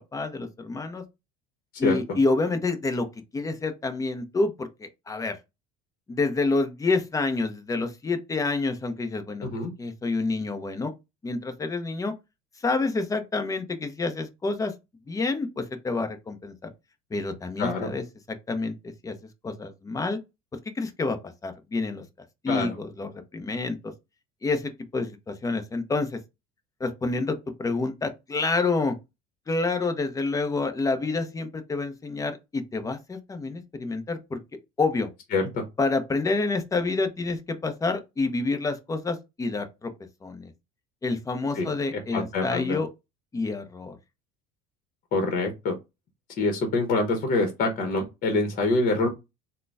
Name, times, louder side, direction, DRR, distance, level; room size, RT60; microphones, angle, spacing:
voice 1, 0.1-1.0 1.8-3.1 3.3-5.4 6.1-9.5 9.8-10.9 11.2-12.1 12.6-14.7 15.1-16.7 17.1-18.0 18.5-18.7 19.0-19.1 19.4-20.2 20.7-21.2 21.4-22.0 22.4-23.9 24.4-26.2 26.8-29.0 29.5-34.4 34.8-35.1 35.8-39.9 40.2-40.5 41.0-42.9 43.3-44.0, left 3 dB, 15° left, 0.7 m, -28 dB
voice 2, 17.6-17.9 22.5-22.8 35.3-35.6 41.5-41.7 41.9-42.8 45.1-45.8 46.4-49.1, left 3 dB, 45° left, 1.0 m, -25 dB
3.8 x 2.2 x 3.3 m
supercardioid pair, 105°, 20 cm